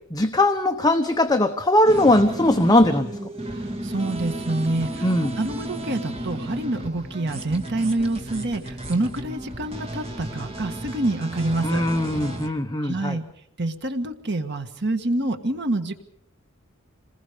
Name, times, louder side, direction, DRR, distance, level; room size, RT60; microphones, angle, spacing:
voice 1, 0.1-3.2 5.0-5.3 11.6-13.2, left 1 dB, 20° left, 5 dB, 1.0 m, -20 dB
sound 1, 1.9-12.5, right 1 dB, 30° right, 2.3 m, -33 dB
voice 2, 3.5-11.8 12.4-13.2 13.6-16.0, right 2 dB, 55° right, 7 dB, 1.6 m, -27 dB
28.0 x 20.5 x 5.1 m, 0.70 s
head